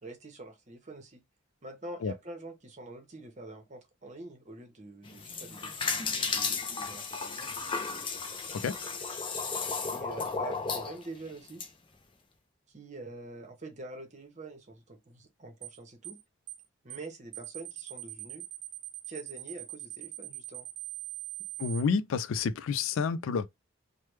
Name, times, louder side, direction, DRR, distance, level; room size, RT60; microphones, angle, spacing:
voice 1, 0.0-1.2 1.6-7.5 9.9-11.6 12.7-16.2 16.8-18.4 19.1-20.7, right 2 dB, 35° right, 0.8 m, -45 dB
sound 1, 5.1-11.7, left 4 dB, 25° left, 0.5 m, -34 dB
sound 2, 15.6-15.8 16.0-16.2 16.5-16.6 16.9-17.1 17.3-21.8, right 15 dB, 80° right, 0.7 m, -41 dB
voice 2, 21.6-23.5, left 5 dB, 80° left, 0.3 m, -29 dB
3.2 x 2.2 x 3.1 m
head